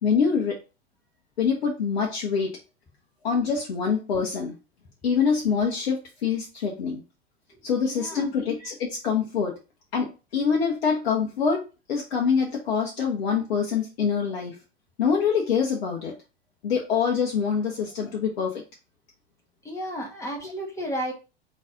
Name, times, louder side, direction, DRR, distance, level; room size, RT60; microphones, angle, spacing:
voice 1, 0.0-0.6 1.4-2.6 3.2-4.5 5.0-7.0 7.6-9.6 9.9-14.6 15.0-16.2 16.6-18.6 20.4-20.5, left 6 dB, 70° left, 0 dB, 1.1 m, -25 dB
voice 2, 7.8-8.3 19.6-21.1, equal, 10° left, -1 dB, 1.4 m, -32 dB
4.1 x 3.2 x 3.7 m, 0.30 s
figure-of-eight pair, 90°, 31 cm